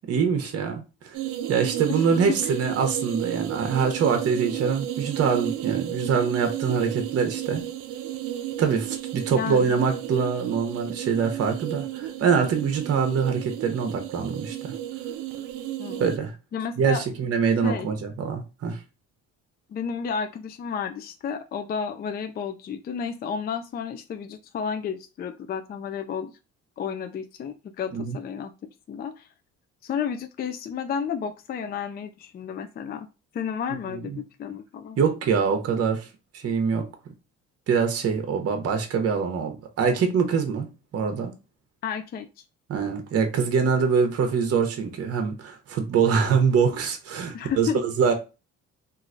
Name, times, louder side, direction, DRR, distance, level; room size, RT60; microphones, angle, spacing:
voice 1, 0.1-1.1 1.5-7.6 8.6-14.7 16.0-16.3 16.8-18.8 27.9-28.2 33.9-34.2 35.0-36.1 36.3-36.9 37.7-40.7 40.9-41.3 42.7-48.1, right 6 dB, 50° right, 0.8 m, -24 dB
sound 1, 1.1-16.2, right 12 dB, 75° right, 0.5 m, -33 dB
voice 2, 9.3-9.8 15.8-16.2 16.5-17.0 17.6-17.9 19.7-26.3 26.8-28.5 28.9-29.3 29.8-33.1 33.3-35.0 41.8-42.3 47.3-47.8, left 7 dB, 30° left, 0.4 m, -32 dB
3.0 x 2.6 x 2.5 m
supercardioid pair, 75°, 31 cm